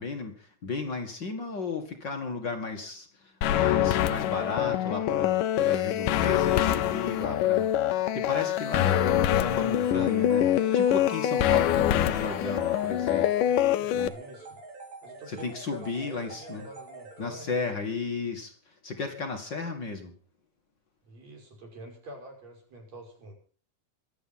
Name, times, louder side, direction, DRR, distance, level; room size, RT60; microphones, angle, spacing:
voice 1, 0.0-13.3 13.9-14.1 15.3-16.7 17.2-20.2, left 4 dB, 40° left, 5 dB, 2.0 m, -34 dB
sound 1, 3.4-14.1, left 11 dB, 80° left, 2.5 m, -25 dB
sound 2, 9.8-17.6, right 2 dB, 80° right, 5.8 m, -45 dB
voice 2, 13.4-14.5 15.0-17.5 21.1-23.3, right 1 dB, 50° right, 1 dB, 6.9 m, -46 dB
24.0 x 9.0 x 5.8 m, 0.43 s
omnidirectional pair, 3.8 m